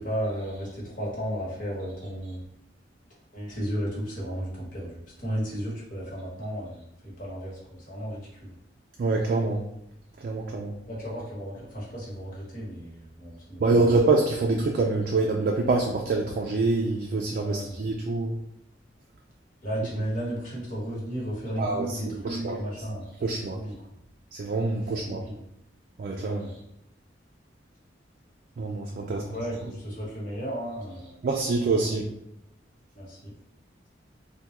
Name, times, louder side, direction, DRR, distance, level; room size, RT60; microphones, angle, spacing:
voice 1, 0.0-2.4 3.3-8.5 10.9-13.9 17.4-17.8 19.6-23.9 24.8-25.4 26.2-26.5 29.1-31.2 32.9-33.3, equal, 45° left, -6 dB, 1.2 m, -34 dB
voice 2, 9.0-9.6 10.2-10.7 13.6-18.4 21.6-22.6 23.2-23.6 24.3-25.2 26.0-26.4 28.6-29.2 31.2-32.0, right 3 dB, 55° right, 1 dB, 0.3 m, -25 dB
3.5 x 2.2 x 2.9 m, 0.78 s
head